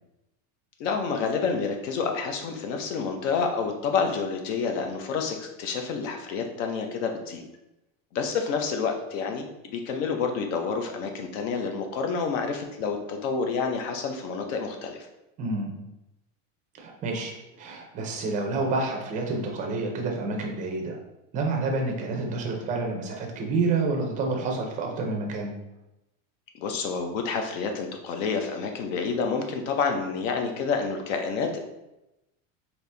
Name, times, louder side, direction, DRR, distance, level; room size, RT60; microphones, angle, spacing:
voice 1, 0.8-7.4 8.1-15.1 26.5-31.6, left 5 dB, 70° left, 4 dB, 0.8 m, -29 dB
voice 2, 15.4-15.8 16.8-17.3 17.6-21.0 21.3-25.6, right 3 dB, 20° right, 1 dB, 0.4 m, -28 dB
4.2 x 2.9 x 3.3 m, 0.93 s
cardioid pair, 165°, 40 cm